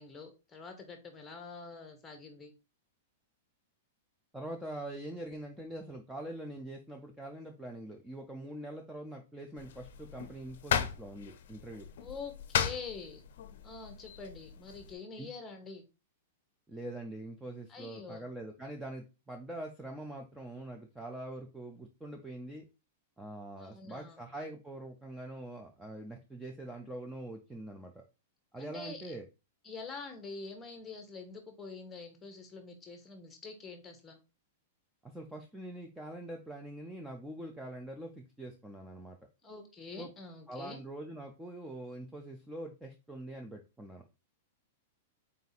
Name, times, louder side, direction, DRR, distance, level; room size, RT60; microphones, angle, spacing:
voice 1, 0.0-2.5 12.0-13.2 13.6-15.8 17.7-18.2 23.6-24.2 28.6-29.1 29.6-34.2 39.4-40.8, left 4 dB, 10° left, 4 dB, 0.9 m, -45 dB
voice 2, 4.3-11.9 15.2-15.3 16.7-22.7 23.2-28.0 28.5-29.2 35.0-39.2 40.0-40.1 40.5-44.0, right 1 dB, 5° right, 3 dB, 0.4 m, -44 dB
sound 1, 9.6-14.9, left 8 dB, 65° left, 0.5 m, -37 dB
4.0 x 2.6 x 4.0 m, 0.29 s
supercardioid pair, 155°, 0 cm